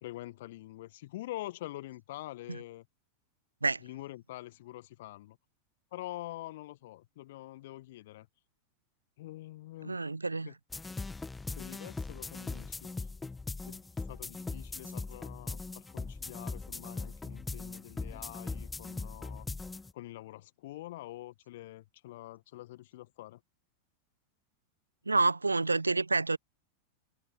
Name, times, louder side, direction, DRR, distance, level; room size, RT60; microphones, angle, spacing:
voice 1, 0.0-2.9 3.8-5.4 5.9-8.3 9.2-10.0 10.5-10.6 11.6-13.1 13.7-13.8 14.1-19.5 19.9-23.4, left 16 dB, 55° left, 1.7 m, -45 dB
voice 2, 9.8-10.5 25.1-26.4, right 3 dB, 80° right, 1.2 m, -28 dB
sound 1, 10.7-19.9, left 3 dB, 10° left, 1.6 m, -40 dB
figure-of-eight pair, 90°, 0 cm